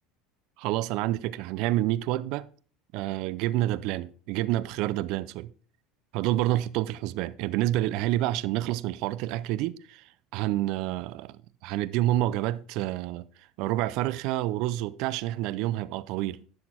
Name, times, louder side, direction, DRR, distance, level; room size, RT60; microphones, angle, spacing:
voice 1, 0.6-2.5 2.9-5.5 6.1-13.3 13.6-16.4, right 15 dB, 65° right, 0.4 m, -28 dB
10.5 x 6.6 x 4.4 m
hypercardioid pair, 85°, 0 cm